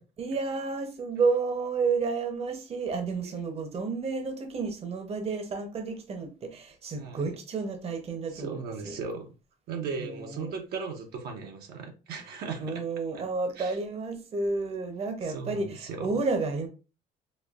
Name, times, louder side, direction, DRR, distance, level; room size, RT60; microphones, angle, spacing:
voice 1, 0.2-8.6 8.8-8.9 10.0-10.5 12.6-16.7, right 4 dB, 35° right, 6 dB, 0.8 m, -31 dB
voice 2, 8.3-9.3 9.7-12.8 13.1-13.2 13.6-13.8 15.2-16.2, right 5 dB, 70° right, 3 dB, 0.8 m, -37 dB
4.2 x 2.7 x 2.4 m, 0.32 s
cardioid pair, 110°, 17 cm